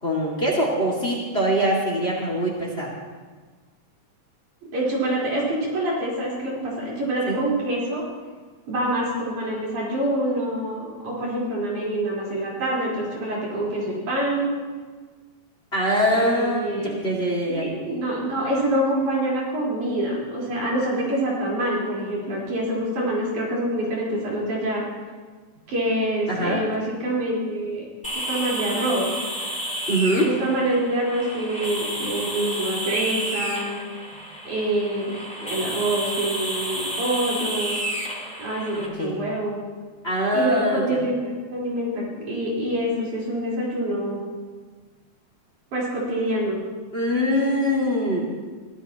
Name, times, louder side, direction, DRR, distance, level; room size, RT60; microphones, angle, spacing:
voice 1, 0.0-2.9 7.3-7.4 15.7-16.6 17.0-17.7 26.3-26.6 29.9-30.3 38.7-39.2 40.0-41.0 46.9-48.2, equal, 20° left, -2 dB, 2.2 m, -23 dB
voice 2, 4.7-8.0 8.7-14.5 16.1-17.0 17.5-24.8 25.7-27.9 28.3-29.1 30.2-33.8 34.5-37.8 38.4-39.6 40.3-44.2 45.7-46.6, right 1 dB, 80° right, -5 dB, 5.6 m, -26 dB
sound 1, 28.0-38.9, equal, 5° left, 1.6 m, -31 dB
23.0 x 15.0 x 3.0 m, 1.4 s
omnidirectional pair, 3.4 m